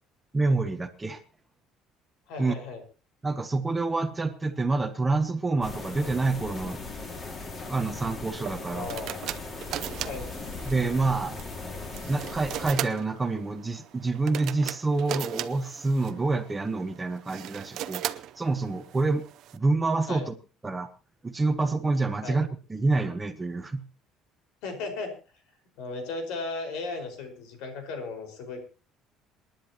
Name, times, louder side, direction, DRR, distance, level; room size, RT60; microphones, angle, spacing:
voice 1, 0.3-1.2 2.4-2.5 3.2-6.8 7.7-8.9 10.6-11.4 12.1-19.2 19.5-20.3 20.6-20.9 21.2-23.8, right 3 dB, 10° right, 8 dB, 1.0 m, -27 dB
voice 2, 2.3-2.8 8.7-9.3 10.0-10.3 20.1-20.3 22.2-22.4 24.6-25.1 25.8-28.6, left 3 dB, 80° left, 5 dB, 5.1 m, -36 dB
sound 1, 5.6-12.7, left 3 dB, 25° left, 2.2 m, -38 dB
sound 2, 8.4-19.6, right 12 dB, 50° right, 0.7 m, -38 dB
28.0 x 10.5 x 3.0 m, 0.35 s
cardioid pair, 175°, 0 cm